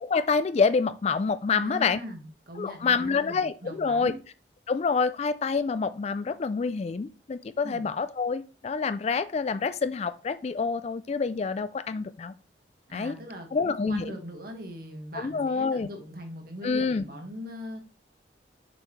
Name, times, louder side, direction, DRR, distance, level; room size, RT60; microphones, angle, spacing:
voice 1, 0.0-2.0 2.6-4.1 4.7-12.3 12.9-13.1 13.5-14.1 15.1-15.9 16.6-17.0, left 5 dB, 35° left, 14 dB, 0.3 m, -27 dB
voice 2, 1.5-4.2 7.6-7.9 12.9-17.8, equal, 50° right, 3 dB, 1.7 m, -40 dB
6.9 x 5.6 x 3.1 m, 0.33 s
head